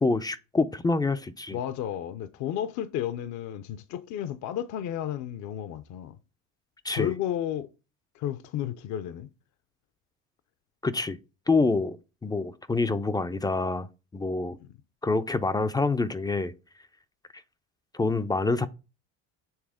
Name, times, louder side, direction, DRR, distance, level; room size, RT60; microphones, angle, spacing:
voice 1, 0.0-1.6 6.8-7.1 10.8-11.2 11.5-12.0 12.2-13.9 14.1-14.6 15.0-16.5 17.9-18.7, left 3 dB, 10° left, 0.3 m, -26 dB
voice 2, 1.5-6.2 6.9-7.7 8.1-9.3 14.6-14.7, left 10 dB, 50° left, 0.6 m, -32 dB
7.3 x 3.4 x 4.9 m
supercardioid pair, 95°, 38 cm